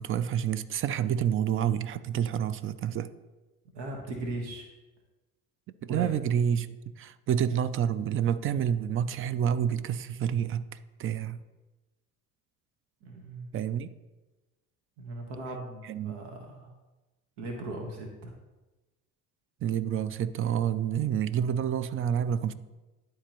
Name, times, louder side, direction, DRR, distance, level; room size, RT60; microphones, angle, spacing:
voice 1, 0.0-3.1 5.8-6.7 6.9-10.7 11.0-11.4 13.5-13.9 15.8-16.2 19.6-22.5, right 9 dB, 30° right, 0.4 m, -28 dB
voice 2, 3.7-4.7 5.9-6.1 13.0-13.5 15.0-16.7 17.4-18.3, right 2 dB, 65° right, 1.4 m, -38 dB
11.5 x 3.8 x 3.0 m
hypercardioid pair, 65°, 44 cm